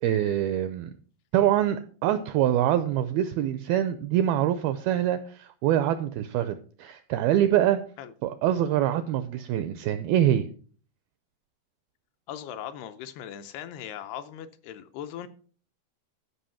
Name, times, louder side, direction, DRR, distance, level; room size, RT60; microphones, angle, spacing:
voice 1, 0.0-0.9 1.3-7.8 8.2-10.5, right 11 dB, 85° right, 2.2 m, -25 dB
voice 2, 12.3-15.3, left 10 dB, 80° left, 2.6 m, -39 dB
13.0 x 5.6 x 5.6 m
omnidirectional pair, 4.9 m